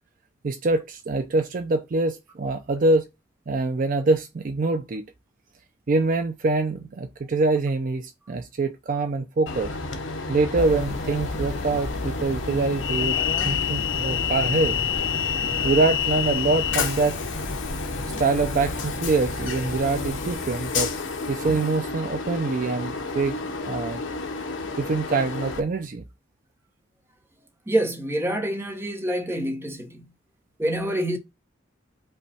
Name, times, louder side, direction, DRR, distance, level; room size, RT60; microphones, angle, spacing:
voice 1, 0.4-3.0 3.5-5.1 5.9-9.7 10.3-14.8 15.6-17.2 18.2-20.9 21.3-24.0 24.8-26.0, right 3 dB, 45° right, 0.4 m, -24 dB
Train, 9.5-25.6, left 6 dB, 75° left, 0.9 m, -29 dB
sound 1, 10.6-20.4, left 1 dB, 35° left, 0.8 m, -35 dB
voice 2, 27.7-30.1 30.6-31.2, right 1 dB, 10° right, 0.8 m, -26 dB
5.5 x 2.3 x 4.1 m
head